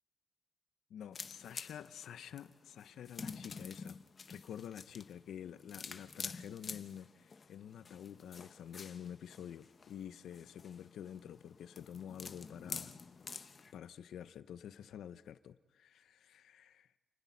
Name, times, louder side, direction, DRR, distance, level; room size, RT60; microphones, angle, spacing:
voice 1, 0.9-4.0 4.3-12.9 13.7-16.9, left 9 dB, 85° left, 13 dB, 0.6 m, -49 dB
sound 1, 1.1-13.7, left 5 dB, 35° left, 0.8 m, -49 dB
28.5 x 9.9 x 9.5 m, 1.2 s
wide cardioid pair, 165°, 0 cm